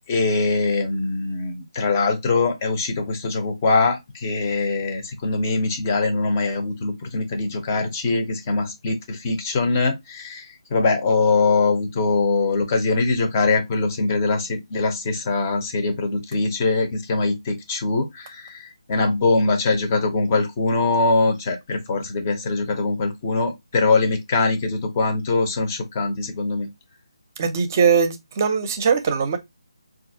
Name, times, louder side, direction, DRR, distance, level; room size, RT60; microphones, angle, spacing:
voice 1, 0.1-26.7, left 3 dB, 25° left, 0.7 m, -22 dB
voice 2, 27.4-29.4, right 6 dB, 30° right, 0.6 m, -20 dB
4.0 x 2.5 x 2.6 m
figure-of-eight pair, 155°, 3 cm